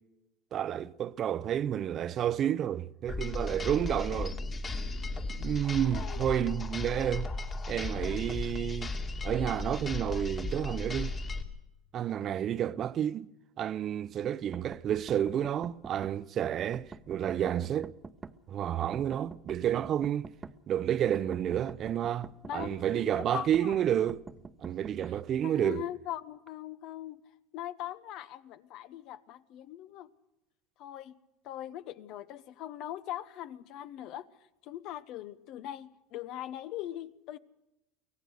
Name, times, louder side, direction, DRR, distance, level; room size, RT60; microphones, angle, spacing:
voice 1, 0.5-4.4 5.4-7.3 7.7-8.9 9.2-11.1 11.9-13.3 13.6-17.9 18.5-20.3 20.7-24.2 24.6-25.8, right 10 dB, 45° right, 0.7 m, -30 dB
sound 1, 3.1-11.4, left 2 dB, 30° left, 2.4 m, -35 dB
sound 2, 14.5-16.2 16.7-18.4 18.9-20.6 21.1-22.8 23.5-25.2, right 4 dB, 20° right, 1.0 m, -45 dB
voice 2, 22.4-23.7 25.4-27.2 27.5-30.1 30.8-31.1 31.4-34.3 34.6-37.4, left 12 dB, 60° left, 1.1 m, -41 dB
24.0 x 17.0 x 6.6 m
supercardioid pair, 100°, 0 cm